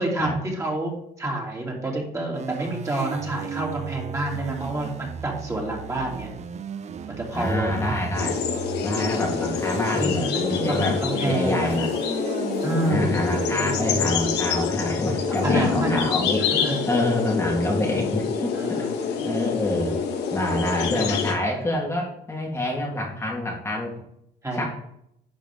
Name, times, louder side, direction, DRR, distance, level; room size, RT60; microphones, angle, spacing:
voice 1, 0.0-6.3 7.1-7.9 9.0-9.4 9.9-11.7 12.6-13.1 15.3-16.0 16.6-16.9 18.5-19.0 24.4-24.7, right 2 dB, 15° right, -1 dB, 2.6 m, -28 dB
sound 1, 2.3-14.2, right 7 dB, 40° right, 0.6 m, -36 dB
voice 2, 7.3-8.4 8.8-11.0 11.2-11.9 12.8-16.4 16.9-20.0 20.3-23.9 24.5-24.6, left 1 dB, 15° left, -2 dB, 1.6 m, -27 dB
sound 2, 8.1-21.3, left 6 dB, 80° left, 1.5 m, -26 dB
10.5 x 6.0 x 3.6 m, 0.75 s
cardioid pair, 110°, 17 cm